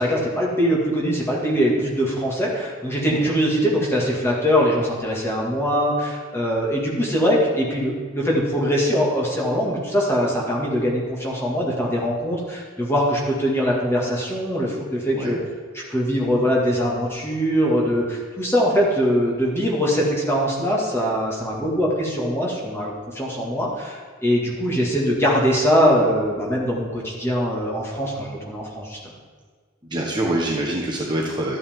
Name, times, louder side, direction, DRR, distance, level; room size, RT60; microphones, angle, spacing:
voice 1, 0.0-15.4 15.7-29.1, equal, 10° left, -3 dB, 2.0 m, -22 dB
voice 2, 29.9-31.6, right 1 dB, 20° right, -3 dB, 1.1 m, -25 dB
12.5 x 8.6 x 3.6 m, 1.5 s
head